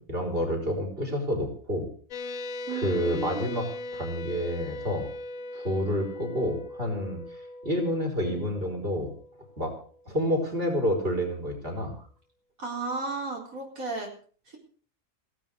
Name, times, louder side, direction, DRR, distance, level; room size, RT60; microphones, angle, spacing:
voice 1, 0.0-1.9 2.7-3.7 3.9-5.1 5.5-9.1 9.6-9.7 10.1-11.9, equal, 45° right, 1 dB, 5.3 m, -29 dB
sound 1, 2.1-10.2, left 2 dB, 75° left, 1.3 m, -39 dB
voice 2, 2.7-3.6 12.6-14.1 14.5-14.6, right 4 dB, 90° right, 0 dB, 4.6 m, -34 dB
17.0 x 12.5 x 6.4 m, 0.44 s
omnidirectional pair, 1.4 m